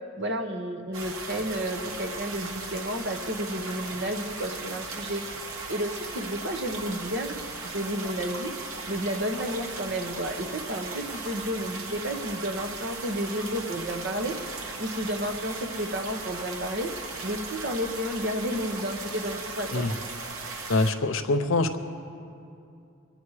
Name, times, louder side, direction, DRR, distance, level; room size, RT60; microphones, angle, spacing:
voice 1, 0.2-5.2 5.7-7.3 7.6-8.5 8.9-16.9 17.2-19.9, equal, 55° right, 4 dB, 1.1 m, -31 dB
sound 1, 0.9-20.9, right 3 dB, 80° right, 1.4 m, -37 dB
voice 2, 20.7-21.8, left 2 dB, 70° left, 9 dB, 0.7 m, -24 dB
24.0 x 9.2 x 4.9 m, 2.5 s
head